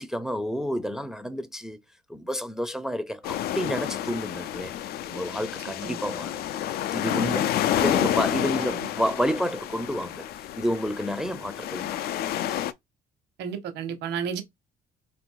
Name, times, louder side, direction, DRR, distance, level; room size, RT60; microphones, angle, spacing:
voice 1, 0.0-1.8 2.1-4.7 5.1-6.4 6.9-10.3 10.6-12.0 12.5-12.7, equal, 5° right, 0.5 m, -30 dB
sound 1, 3.2-12.7, left 11 dB, 70° left, 0.5 m, -29 dB
voice 2, 13.4-14.4, right 7 dB, 80° right, 1.1 m, -32 dB
3.3 x 2.6 x 4.6 m
cardioid pair, 110°, 17 cm